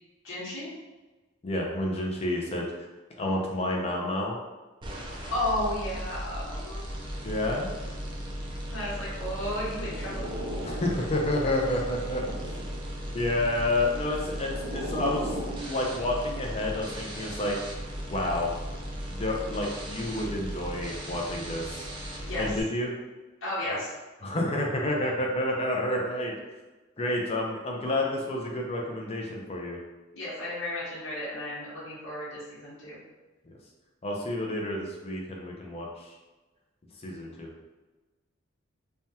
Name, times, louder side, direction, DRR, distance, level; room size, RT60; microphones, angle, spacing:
voice 1, 0.2-0.7 5.3-6.8 8.7-10.6 22.2-22.5 23.4-23.9 30.1-33.0, left 1 dB, 80° left, -9 dB, 1.1 m, -33 dB
voice 2, 1.4-2.7 3.2-4.4 7.2-7.7 10.6-12.6 13.1-17.6 18.1-18.5 19.1-21.9 22.4-22.9 23.6-23.8 24.2-26.3 27.0-29.8 33.5-33.6 34.0-36.1 37.0-37.5, left 1 dB, 30° left, -1 dB, 0.5 m, -29 dB
sound 1, 4.8-22.6, equal, 25° right, 0.4 m, -37 dB
sound 2, 9.5-11.3 11.7-12.9 13.8-15.6, equal, 85° right, 0.6 m, -38 dB
3.3 x 2.2 x 2.8 m, 1.2 s
head